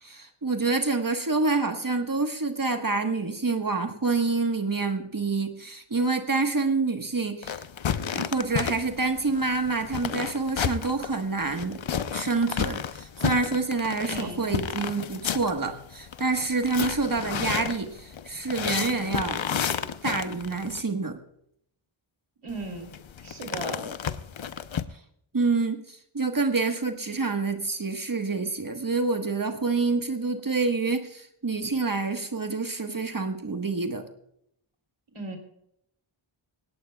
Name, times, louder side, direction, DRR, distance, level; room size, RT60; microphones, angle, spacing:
voice 1, 0.0-7.6 8.1-11.8 12.1-19.6 20.0-21.2 25.3-34.0, right 3 dB, 40° right, 5 dB, 1.4 m, -27 dB
sound 1, 7.4-20.8 22.5-24.8, left 8 dB, 65° left, 0.8 m, -32 dB
voice 2, 14.0-14.4 22.4-22.9 23.2-23.9 35.1-35.4, right 3 dB, 75° right, 3 dB, 3.4 m, -36 dB
17.5 x 17.5 x 2.3 m, 0.73 s
wide cardioid pair, 50°, 50 cm